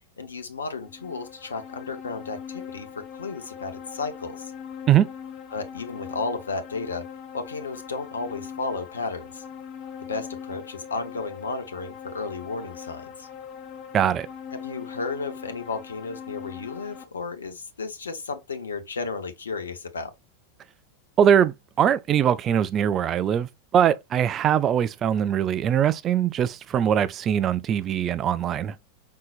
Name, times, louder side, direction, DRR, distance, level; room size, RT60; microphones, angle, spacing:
voice 1, 0.2-4.5 5.5-7.1 7.3-9.4 10.1-13.3 14.5-20.1, left 4 dB, 70° left, 0.8 m, -33 dB
sound 1, 0.7-17.0, left 7 dB, 35° left, 0.9 m, -41 dB
voice 2, 13.9-14.3 21.2-28.8, right 9 dB, 30° right, 0.3 m, -22 dB
5.5 x 3.9 x 2.4 m
figure-of-eight pair, 90°, 0 cm